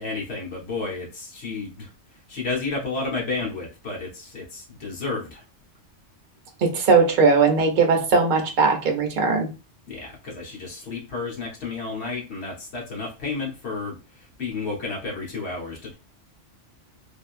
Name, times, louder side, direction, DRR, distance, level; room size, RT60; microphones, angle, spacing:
voice 1, 0.0-1.9 2.3-5.4 9.9-14.0 14.4-15.9, left 3 dB, 60° left, -2 dB, 1.1 m, -31 dB
voice 2, 6.6-9.5, right 4 dB, 50° right, 2 dB, 0.7 m, -19 dB
3.4 x 2.5 x 2.4 m, 0.30 s
omnidirectional pair, 1.3 m